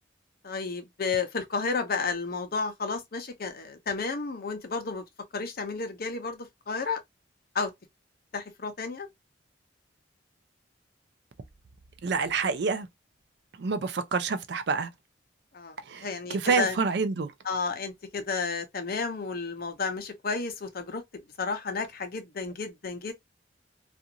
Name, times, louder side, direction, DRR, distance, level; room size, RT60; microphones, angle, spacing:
voice 1, 0.4-5.0 5.3-7.0 7.5-7.7 8.3-9.1 15.5-15.8 16.0-16.7 17.5-21.0 21.4-23.1, left 4 dB, 55° left, 0.7 m, -32 dB
voice 2, 12.0-12.9 13.6-14.9 15.9-17.3, right 4 dB, 65° right, 0.5 m, -28 dB
2.5 x 2.5 x 2.8 m
head